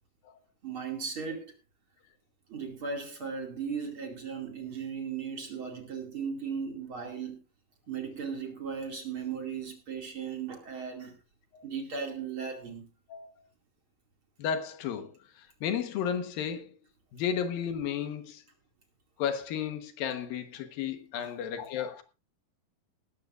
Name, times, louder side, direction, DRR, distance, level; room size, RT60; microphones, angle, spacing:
voice 1, 0.6-1.5 2.5-7.4 7.9-11.1 11.6-12.8 21.2-21.4, right 6 dB, 40° right, 3.0 m, -37 dB
voice 2, 14.4-15.1 15.6-16.7 17.1-18.4 19.2-22.0, left 8 dB, 80° left, 3.0 m, -33 dB
18.0 x 14.0 x 2.5 m
omnidirectional pair, 4.0 m